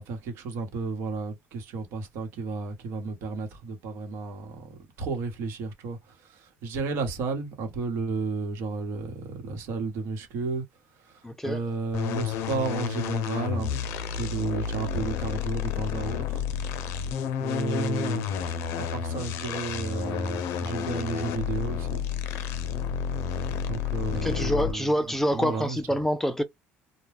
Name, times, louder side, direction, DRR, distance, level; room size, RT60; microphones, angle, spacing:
voice 1, 0.0-10.6 10.9-13.7 14.1-17.1 17.4-22.0 23.6-25.8, right 4 dB, 70° right, 1.1 m, -33 dB
voice 2, 11.2-11.6 24.2-26.4, equal, 5° left, 0.4 m, -26 dB
sound 1, 11.9-24.9, left 8 dB, 75° left, 0.5 m, -30 dB
2.2 x 2.2 x 3.3 m
cardioid pair, 115°, 4 cm